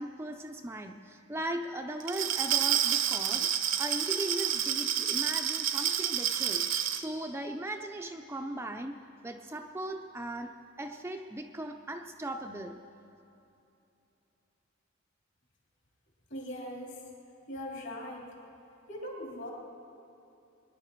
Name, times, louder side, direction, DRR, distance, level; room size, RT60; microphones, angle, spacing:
voice 1, 0.0-3.5 3.8-6.7 6.9-9.0 9.2-12.8, right 1 dB, 10° right, 4 dB, 0.5 m, -38 dB
Glass, 2.0-7.0, right 10 dB, 65° right, 0.8 m, -29 dB
voice 2, 16.3-17.0 17.5-18.3 18.9-19.5, left 1 dB, 60° left, -2 dB, 3.1 m, -40 dB
23.0 x 10.5 x 4.6 m, 2.8 s
head